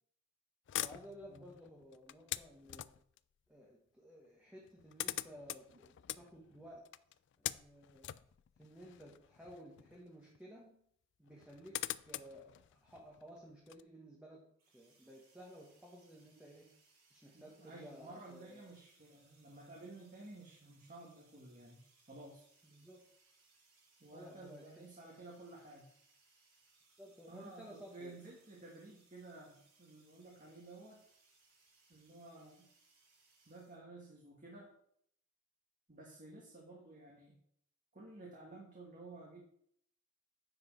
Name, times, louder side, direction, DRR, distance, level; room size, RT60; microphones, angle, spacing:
sound 1, 0.7-3.2 4.2-4.3 4.5-10.0 10.3-10.4 11.3-13.8, left 14 dB, 60° left, 0.3 m, -44 dB
voice 1, 0.8-3.0 3.5-6.9 7.4-8.2 8.6-10.8 11.2-16.8 17.1-18.6 22.6-23.1 24.1-24.9 27.0-28.2, equal, 5° right, -3 dB, 1.2 m, -55 dB
sound 2, 14.6-33.8, right 3 dB, 70° right, 3.8 m, -71 dB
voice 2, 17.3-21.8 22.1-22.4 24.0-25.9 27.3-31.0 31.9-32.7 33.5-34.7 35.9-37.4 37.9-39.4, right 2 dB, 40° right, -3 dB, 1.7 m, -53 dB
9.7 x 4.9 x 4.6 m, 0.66 s
head